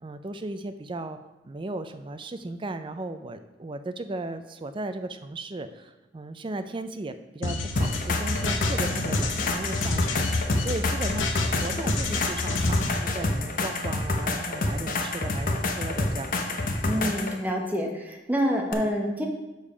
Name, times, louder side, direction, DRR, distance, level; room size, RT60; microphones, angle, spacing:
voice 1, 0.0-1.2 1.4-16.6, right 2 dB, 25° right, 9 dB, 0.4 m, -36 dB
sound 1, 7.4-12.9, left 3 dB, 90° left, 0.9 m, -29 dB
sound 2, 7.8-17.4 18.7-18.8, left 2 dB, 45° left, 0.8 m, -28 dB
voice 2, 16.8-19.3, equal, 10° right, 1 dB, 0.9 m, -27 dB
6.6 x 5.4 x 5.0 m, 1.0 s
head